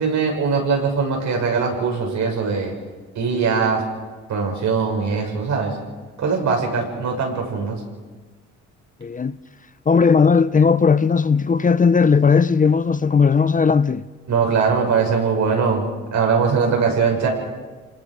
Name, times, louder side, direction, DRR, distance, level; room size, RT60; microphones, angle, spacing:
voice 1, 0.0-2.7 3.1-3.8 4.3-5.8 6.2-7.8 14.3-15.8 16.1-17.3, right 5 dB, 70° right, 6.2 m, -21 dB
voice 2, 9.0-9.4 9.9-14.0, left 5 dB, 25° left, 0.6 m, -16 dB
27.5 x 20.0 x 6.4 m
cardioid pair, 90°, 30 cm